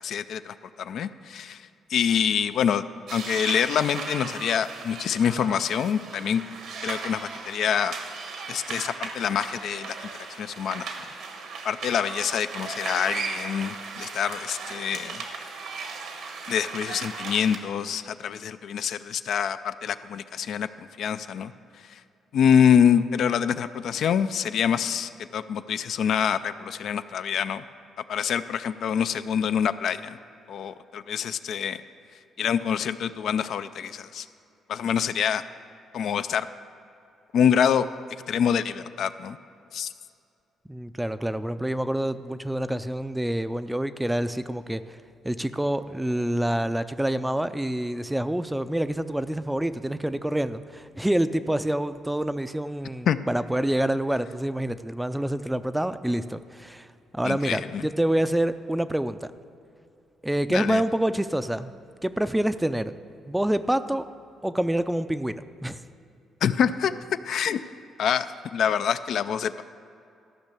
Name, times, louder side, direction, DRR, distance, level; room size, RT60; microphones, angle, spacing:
voice 1, 0.0-2.8 3.1-6.4 6.8-7.9 8.5-10.9 11.6-15.2 16.5-22.0 22.3-27.6 28.1-30.2 30.5-31.8 32.4-34.3 34.7-35.4 35.9-36.5 37.3-37.9 38.3-39.4 39.7-39.9 53.1-53.2 57.2-57.9 60.5-60.8 66.4-66.9 67.2-67.6 68.0-69.6, left 8 dB, 70° left, 12 dB, 0.4 m, -26 dB
sound 1, 3.1-17.6, right 4 dB, 80° right, 1.3 m, -37 dB
voice 2, 40.7-45.0 45.2-56.9 57.1-59.3 60.2-61.7 62.0-62.9 63.3-64.0 64.4-65.8, right 1 dB, 5° right, 12 dB, 0.4 m, -27 dB
13.5 x 5.5 x 6.8 m, 2.6 s
cardioid pair, 90°, 0 cm